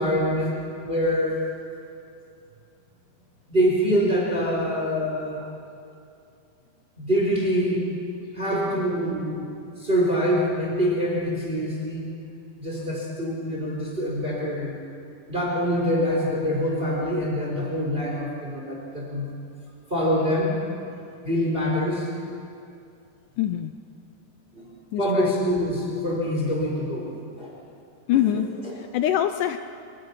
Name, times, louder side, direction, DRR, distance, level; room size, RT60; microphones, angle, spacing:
voice 1, 0.0-1.4 3.5-5.5 7.0-7.8 8.3-9.5 9.8-12.1 12.6-14.7 15.3-19.3 19.9-20.6 21.2-22.1 24.5-27.1 27.4-27.5 28.1-28.8, equal, 15° right, -3 dB, 3.9 m, -25 dB
voice 2, 23.4-23.7 24.9-25.3 28.1-28.5 28.9-29.6, left 11 dB, 80° left, 9 dB, 2.0 m, -23 dB
24.5 x 22.5 x 5.8 m, 2.5 s
omnidirectional pair, 4.1 m